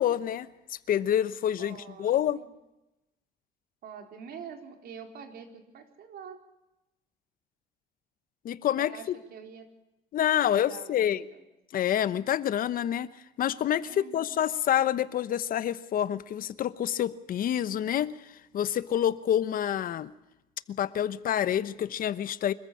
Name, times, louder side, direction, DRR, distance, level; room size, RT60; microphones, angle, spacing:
voice 1, 0.0-2.4 8.4-9.2 10.1-11.2 11.7-13.1 13.4-18.2 18.5-20.1 20.8-22.5, left 10 dB, 55° left, 1.0 m, -27 dB
voice 2, 1.6-2.5 3.8-6.4 8.8-9.7 10.4-11.5 13.9-14.3, right 7 dB, 65° right, 4.0 m, -46 dB
25.5 x 14.5 x 8.6 m
cardioid pair, 110°, 17 cm